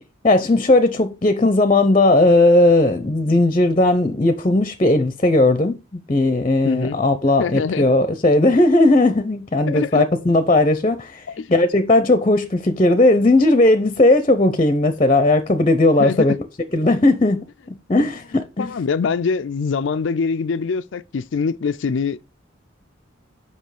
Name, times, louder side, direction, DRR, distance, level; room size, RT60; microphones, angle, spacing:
voice 1, 0.2-16.3 16.7-17.4 17.9-18.7, left 2 dB, 30° left, 0.7 m, -17 dB
voice 2, 6.6-7.0 7.4-7.9 9.7-10.0 11.4-11.5 16.0-16.4 18.0-18.1 18.6-22.2, left 5 dB, 75° left, 0.4 m, -23 dB
7.9 x 5.6 x 4.9 m
head